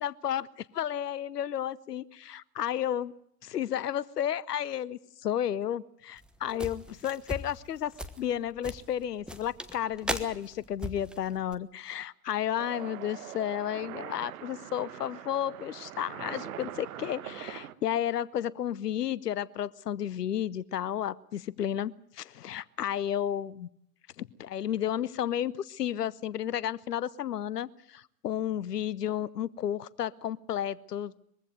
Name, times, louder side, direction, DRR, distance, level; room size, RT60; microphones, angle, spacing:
voice 1, 0.0-3.1 3.4-7.9 8.2-23.7 24.2-31.1, left 10 dB, 75° left, 22 dB, 0.8 m, -32 dB
sound 1, 6.2-11.5, equal, ahead, 1.3 m, -39 dB
sound 2, 12.6-17.7, right 12 dB, 65° right, 1.2 m, -42 dB
22.0 x 15.5 x 9.4 m, 0.70 s
figure-of-eight pair, 85°, 47 cm